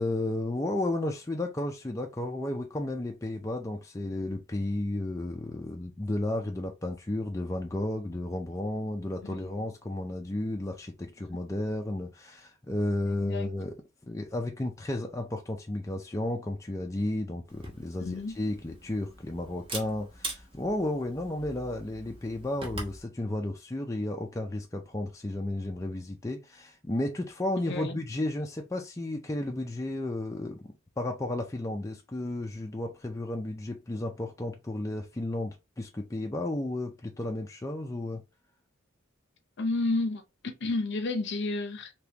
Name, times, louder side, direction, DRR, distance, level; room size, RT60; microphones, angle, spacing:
voice 1, 0.0-13.8 14.1-38.2, left 1 dB, 15° left, 0.4 m, -33 dB
voice 2, 9.2-9.7 13.1-13.5 18.0-18.4 27.6-28.0 39.6-41.9, left 2 dB, 55° left, 0.7 m, -31 dB
Camera, 17.5-23.0, right 1 dB, 25° right, 1.0 m, -43 dB
3.5 x 2.9 x 2.9 m
head